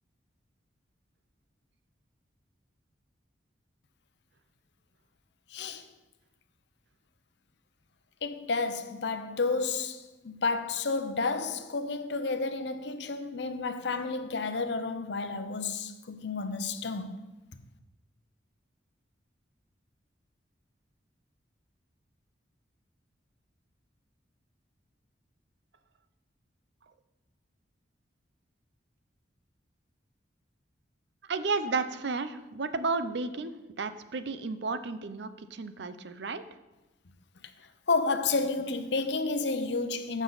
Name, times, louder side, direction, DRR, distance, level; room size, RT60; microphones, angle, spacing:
voice 1, 5.5-5.8 8.2-17.2 37.9-40.2, left 3 dB, 70° left, 0.7 m, -31 dB
voice 2, 31.3-33.5 33.8-36.4, right 4 dB, 65° right, 0.6 m, -32 dB
14.0 x 6.2 x 4.0 m
head